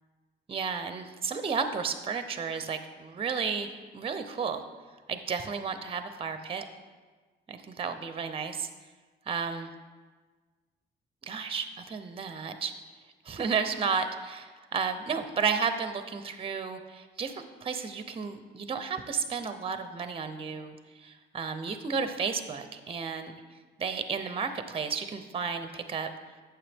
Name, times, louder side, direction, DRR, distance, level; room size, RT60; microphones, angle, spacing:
voice 1, 0.5-4.7 5.1-6.6 7.5-8.7 9.3-9.7 11.3-12.7 13.2-23.3 23.8-26.1, right 5 dB, 30° right, 9 dB, 0.6 m, -32 dB
8.8 x 6.8 x 3.5 m, 1.4 s
cardioid pair, 90°, 20 cm